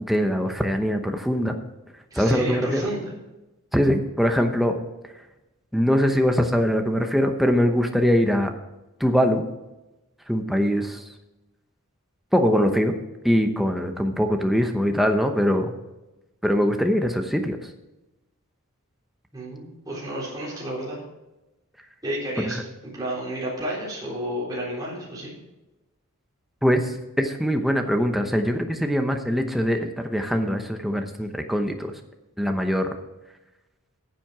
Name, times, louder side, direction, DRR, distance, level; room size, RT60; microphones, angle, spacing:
voice 1, 0.0-1.5 2.1-2.8 3.7-4.8 5.7-8.5 9.0-9.4 10.3-11.1 12.3-13.0 13.2-15.7 16.4-17.7 22.4-22.6 26.6-31.9 32.4-32.9, equal, ahead, 4 dB, 0.8 m, -22 dB
voice 2, 2.1-3.1 19.3-21.0 22.0-25.3, right 1 dB, 15° right, -6 dB, 4.0 m, -31 dB
10.5 x 7.6 x 6.0 m, 1.0 s
head